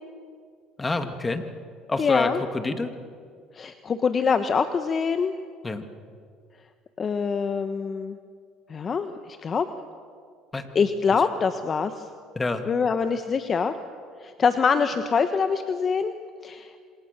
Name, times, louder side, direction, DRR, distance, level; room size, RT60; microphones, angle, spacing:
voice 1, 0.8-1.4 1.9-2.9 5.6-5.9 10.5-10.7 12.4-12.7, left 3 dB, 20° left, 7 dB, 2.3 m, -27 dB
voice 2, 2.0-2.4 3.5-5.3 7.0-8.2 8.7-9.7 10.7-12.1 12.7-13.8 14.2-16.1 16.4-16.7, left 5 dB, 35° left, 8 dB, 1.3 m, -24 dB
27.5 x 26.0 x 6.9 m, 2.1 s
supercardioid pair, 95°, 0 cm